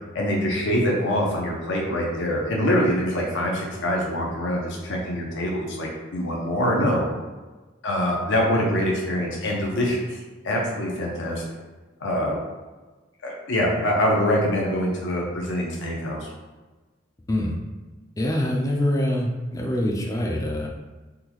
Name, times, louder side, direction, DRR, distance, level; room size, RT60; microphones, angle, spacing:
voice 1, 0.1-7.1 7.8-10.0 10.4-11.4 12.0-12.4 13.2-16.3, equal, 70° left, -2 dB, 0.6 m, -24 dB
voice 2, 18.2-20.7, left 1 dB, 15° left, -1 dB, 0.3 m, -24 dB
3.6 x 2.2 x 2.9 m, 1.2 s
head